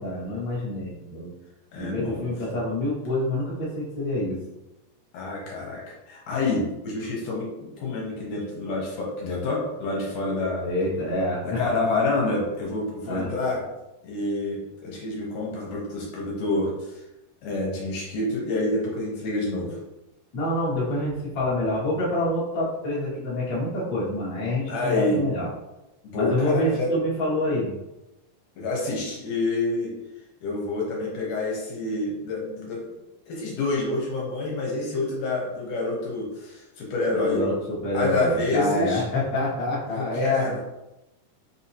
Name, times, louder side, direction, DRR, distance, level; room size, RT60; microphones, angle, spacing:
voice 1, 0.0-1.3 1.8-4.4 10.6-11.8 13.1-13.3 20.3-25.5 26.1-27.7 37.0-40.6, left 1 dB, 50° left, -7 dB, 1.2 m, -27 dB
voice 2, 1.7-2.3 5.1-10.7 11.5-13.6 14.0-17.0 17.4-19.8 24.7-25.2 26.0-26.9 28.6-29.9 30.4-32.8 33.3-37.5 37.9-39.0 39.9-40.6, left 2 dB, 70° left, -3 dB, 2.2 m, -28 dB
5.5 x 2.7 x 2.8 m, 0.94 s
omnidirectional pair, 4.0 m